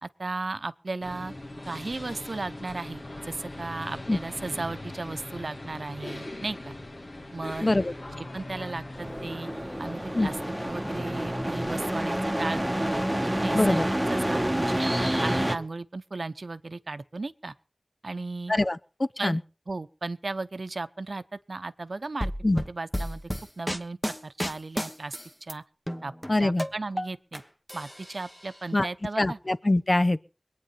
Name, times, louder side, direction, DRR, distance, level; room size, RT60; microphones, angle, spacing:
voice 1, 0.0-1.3 1.7-6.7 7.3-7.7 8.2-9.5 9.8-10.4 10.7-13.1 13.4-17.5 18.0-18.5 19.2-19.4 19.7-23.2 23.6-24.0 24.2-25.6 26.0-26.1 26.4-27.4 27.7-29.4, right 3 dB, 80° right, 0.7 m, -35 dB
sound 1, 1.0-11.8, left 1 dB, 60° left, 2.5 m, -40 dB
voice 2, 7.6-7.9 10.2-10.3 13.5-13.8 18.5-19.4 22.4-22.6 26.3-26.7 28.7-28.9 29.2-30.3, left 2 dB, 45° left, 0.8 m, -24 dB
sound 2, 9.0-15.6, right 1 dB, 15° right, 1.4 m, -28 dB
sound 3, 22.2-25.5 25.9-27.4 27.7-28.6, equal, 10° left, 1.3 m, -32 dB
21.5 x 9.5 x 5.8 m
wide cardioid pair, 45°, 0 cm